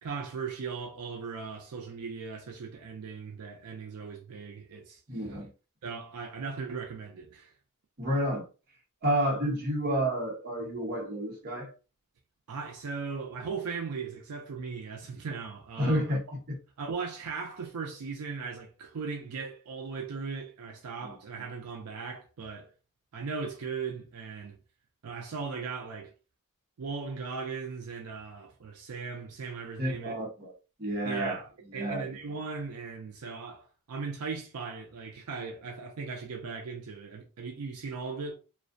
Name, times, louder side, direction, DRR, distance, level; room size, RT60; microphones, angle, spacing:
voice 1, 0.0-5.0 5.8-7.5 12.5-16.2 16.8-22.7 23.1-24.6 25.0-26.1 26.8-30.2 31.0-38.4, right 5 dB, 80° right, 0.5 m, -38 dB
voice 2, 5.1-5.5 8.0-8.4 9.0-11.7 15.8-16.6 21.0-21.1 29.8-30.5 30.8-31.4 31.6-32.2, right 1 dB, 45° right, 0.9 m, -30 dB
2.5 x 2.1 x 2.5 m
head